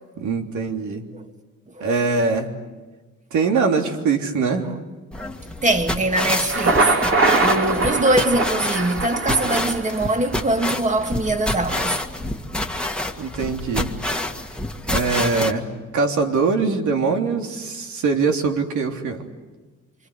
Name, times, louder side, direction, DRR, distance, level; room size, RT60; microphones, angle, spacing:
voice 1, 0.2-1.1 1.8-2.5 3.3-4.7 13.2-13.9 14.9-19.2, right 4 dB, 75° right, 3.4 m, -22 dB
sound 1, 5.1-15.5, left 1 dB, 5° left, 2.0 m, -28 dB
voice 2, 5.6-7.0 7.4-12.0, right 2 dB, 25° right, 2.3 m, -22 dB
Thunder, 6.4-10.3, right 3 dB, 45° right, 3.7 m, -22 dB
28.0 x 24.5 x 8.2 m
cardioid pair, 90°, 30 cm